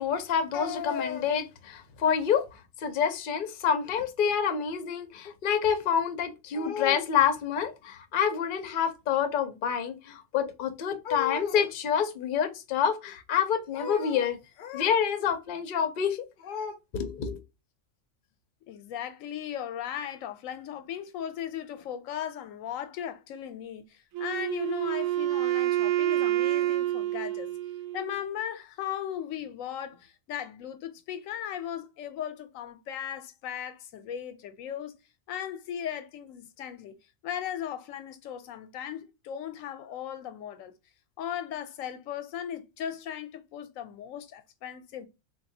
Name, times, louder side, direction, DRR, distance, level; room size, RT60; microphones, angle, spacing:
voice 1, 0.0-17.4, left 7 dB, 55° left, 0.6 m, -28 dB
voice 2, 18.7-27.5 27.9-34.9 35.3-36.9 37.2-40.7 41.2-45.1, left 10 dB, 90° left, 1.0 m, -37 dB
Wind instrument woodwind instrument, 24.1-28.2, right 14 dB, 80° right, 1.0 m, -28 dB
3.9 x 2.3 x 2.6 m
omnidirectional pair, 1.4 m